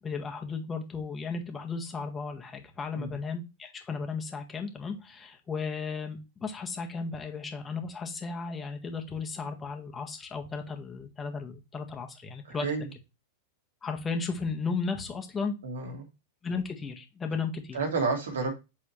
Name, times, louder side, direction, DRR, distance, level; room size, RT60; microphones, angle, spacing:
voice 1, 0.0-12.7 13.8-15.5 16.4-17.8, left 4 dB, 20° left, 4 dB, 1.6 m, -35 dB
voice 2, 12.4-12.9 15.6-16.1 17.7-18.5, right 4 dB, 85° right, 4 dB, 2.2 m, -30 dB
8.3 x 4.2 x 3.3 m, 0.26 s
hypercardioid pair, 115°, 0 cm